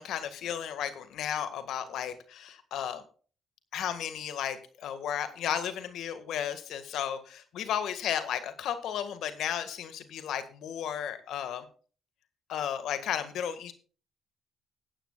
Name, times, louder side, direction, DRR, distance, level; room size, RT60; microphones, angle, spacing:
voice 1, 0.0-3.0 3.7-11.7 12.5-13.7, left 9 dB, 80° left, 10 dB, 1.7 m, -34 dB
19.5 x 9.1 x 2.4 m, 0.39 s
supercardioid pair, 70°, 0 cm